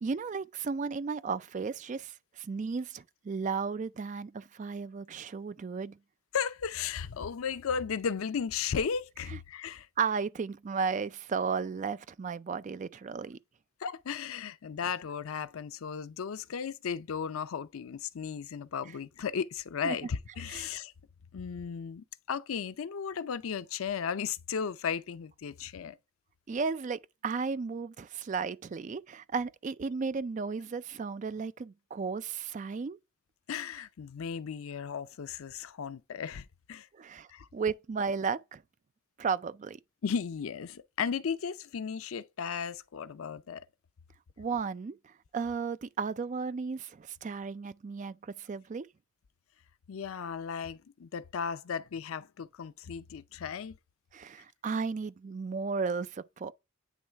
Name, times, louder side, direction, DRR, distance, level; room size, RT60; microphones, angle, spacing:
voice 1, 0.0-6.0 10.0-13.4 19.8-20.0 20.5-20.7 26.5-33.0 36.9-38.6 39.2-39.8 44.4-48.9 54.1-56.5, right 5 dB, 35° right, 0.3 m, -34 dB
voice 2, 6.3-9.9 13.8-20.9 21.3-26.0 33.5-36.9 37.3-37.5 40.0-43.6 49.9-53.8, left 6 dB, 85° left, 0.5 m, -35 dB
9.2 x 3.1 x 3.3 m
head